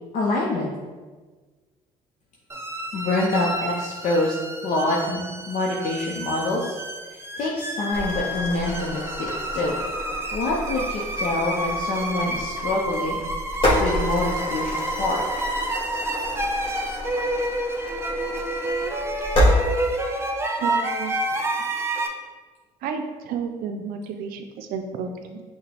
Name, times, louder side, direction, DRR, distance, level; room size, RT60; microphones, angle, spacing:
voice 1, 0.1-0.7 2.9-4.4 4.6-6.7 7.4-9.7 10.3-13.2 13.8-15.2, left 2 dB, 55° left, -3 dB, 0.7 m, -26 dB
sound 1, 2.5-22.1, right 1 dB, 15° right, 0.6 m, -29 dB
sound 2, 7.9-19.5, equal, 35° left, 1.4 m, -29 dB
voice 2, 20.6-21.2 22.8-25.4, right 6 dB, 70° right, 6 dB, 0.5 m, -31 dB
5.6 x 2.2 x 3.4 m, 1.4 s
supercardioid pair, 80°, 15 cm